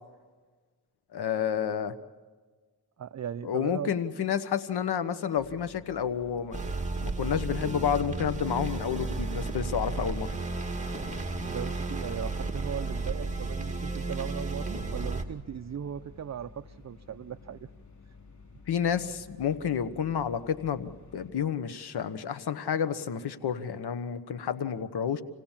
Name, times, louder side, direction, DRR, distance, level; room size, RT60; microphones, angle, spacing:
voice 1, 1.1-1.9 3.4-6.6 7.0-10.3 18.7-25.2, left 8 dB, 85° left, 12 dB, 1.3 m, -30 dB
voice 2, 3.0-3.9 11.4-17.7, right 9 dB, 45° right, 11 dB, 0.6 m, -38 dB
sound 1, 5.4-21.3, left 4 dB, 45° left, 3.0 m, -52 dB
sound 2, 6.5-15.3, right 3 dB, 20° right, 2.4 m, -33 dB
27.5 x 17.0 x 7.4 m, 1.4 s
cardioid pair, 70°, 38 cm